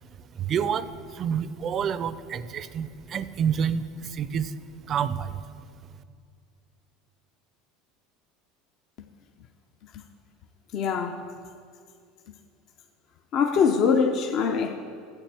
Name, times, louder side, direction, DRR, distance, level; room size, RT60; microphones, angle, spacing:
voice 1, 0.0-5.9, right 7 dB, 40° right, 0.4 m, -29 dB
voice 2, 10.7-11.3 13.3-14.7, left 6 dB, 55° left, 0.6 m, -23 dB
14.0 x 8.3 x 3.5 m
hypercardioid pair, 80°, 0 cm